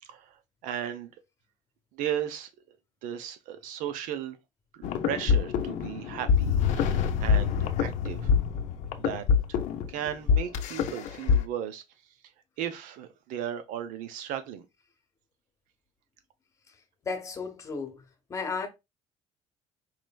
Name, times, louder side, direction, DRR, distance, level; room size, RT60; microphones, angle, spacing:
voice 1, 0.0-1.1 1.9-2.5 3.0-4.4 4.7-8.3 9.0-9.2 9.9-11.8 12.6-14.7, right 10 dB, 75° right, 0.8 m, -36 dB
sound 1, 4.8-11.4, left 6 dB, 60° left, 0.6 m, -25 dB
voice 2, 17.0-18.0 18.3-18.7, left 5 dB, 25° left, 0.9 m, -33 dB
4.8 x 3.2 x 2.3 m
cardioid pair, 155°, 13 cm